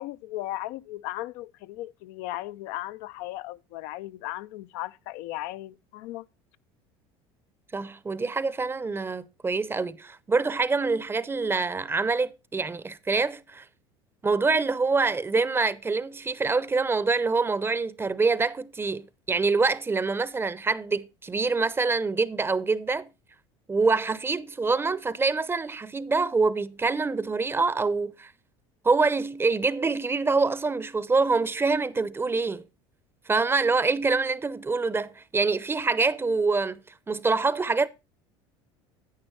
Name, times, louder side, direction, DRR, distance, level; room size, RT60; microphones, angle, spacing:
voice 1, 0.0-6.3, left 16 dB, 70° left, 0.5 m, -36 dB
voice 2, 7.7-13.7 14.2-23.1 23.7-28.3 28.8-32.6 33.3-37.9, right 4 dB, 20° right, 0.7 m, -25 dB
10.5 x 8.8 x 3.1 m
supercardioid pair, 95°, 13 cm